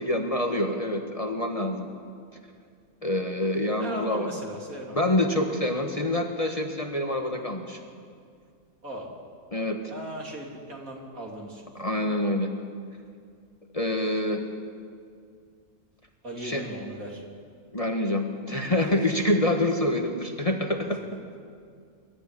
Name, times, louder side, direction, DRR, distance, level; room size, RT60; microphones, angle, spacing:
voice 1, 0.0-1.9 3.0-4.3 4.9-7.8 9.5-9.8 11.8-12.5 13.7-14.4 16.4-16.6 17.7-21.0, left 1 dB, 25° left, 2 dB, 1.5 m, -26 dB
voice 2, 3.8-5.0 8.8-9.1 9.9-11.7 16.2-17.2, right 1 dB, 70° right, -1 dB, 3.7 m, -37 dB
24.5 x 13.5 x 9.9 m, 2.2 s
omnidirectional pair, 1.5 m